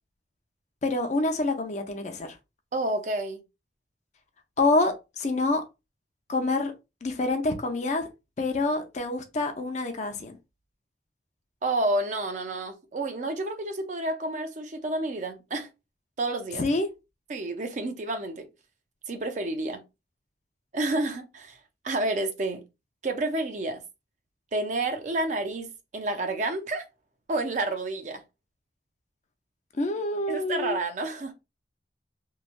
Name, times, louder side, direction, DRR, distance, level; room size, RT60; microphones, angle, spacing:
voice 1, 0.8-2.3 4.6-5.6 6.3-6.7 7.0-8.1 8.4-10.4 16.6-16.9 29.8-30.8, left 2 dB, 40° left, 0.5 m, -27 dB
voice 2, 2.7-3.4 11.6-15.7 16.2-16.7 17.3-18.5 19.1-19.8 20.7-21.6 21.8-22.6 23.0-23.8 24.5-25.7 25.9-26.9 27.3-28.2 30.3-31.3, right 2 dB, 45° right, 0.5 m, -29 dB
3.1 x 2.2 x 2.4 m
head